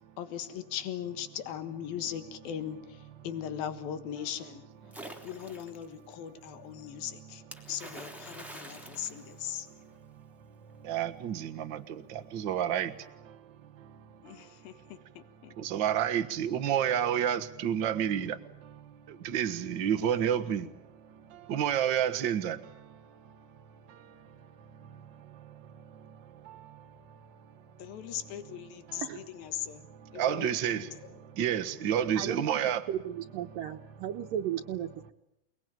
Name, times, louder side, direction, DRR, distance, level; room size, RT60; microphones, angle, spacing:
voice 1, 0.2-4.6 5.2-7.4 7.7-9.7 14.2-15.5 27.8-29.8 30.1-31.0, left 10 dB, 80° left, 3.4 m, -39 dB
Splash splatter, 4.9-5.8 7.5-9.9, right 1 dB, ahead, 2.7 m, -46 dB
voice 2, 10.9-12.0 12.3-12.9 15.6-18.4 19.2-20.7 21.5-22.6 30.2-30.8 31.4-32.8, right 9 dB, 55° right, 1.3 m, -29 dB
voice 3, 32.2-35.1, right 10 dB, 75° right, 2.7 m, -35 dB
29.0 x 20.5 x 9.1 m
omnidirectional pair, 4.1 m